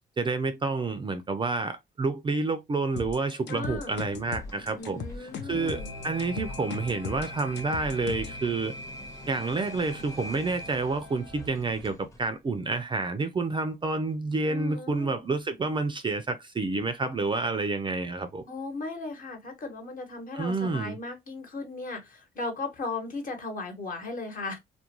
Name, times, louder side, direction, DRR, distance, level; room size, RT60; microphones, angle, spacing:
voice 1, 0.2-8.7 9.3-18.4 20.3-21.0, right 3 dB, 25° right, 0.4 m, -29 dB
sound 1, 3.0-8.4, left 6 dB, 65° left, 0.6 m, -38 dB
voice 2, 3.5-4.0 4.8-5.9 14.5-15.1 18.5-24.6, left 3 dB, 45° left, 1.0 m, -36 dB
sound 2, 3.7-12.3, equal, 15° left, 0.7 m, -44 dB
sound 3, 5.3-11.5, left 2 dB, 85° left, 1.2 m, -46 dB
2.3 x 2.1 x 2.9 m
cardioid pair, 100°, 19 cm